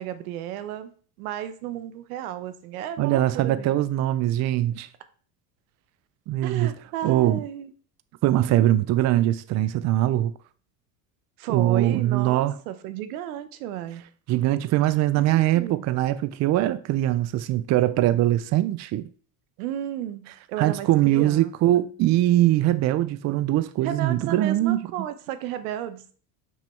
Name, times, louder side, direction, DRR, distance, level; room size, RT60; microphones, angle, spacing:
voice 1, 0.0-3.7 6.4-7.7 11.4-14.0 15.2-15.8 19.6-21.9 23.8-26.1, right 11 dB, 85° right, 1.1 m, -33 dB
voice 2, 3.0-4.9 6.3-6.7 7.0-7.4 8.2-10.3 11.5-12.5 14.3-19.0 20.6-24.8, right 14 dB, 40° right, 0.5 m, -22 dB
7.4 x 6.1 x 4.4 m
supercardioid pair, 120°, 43 cm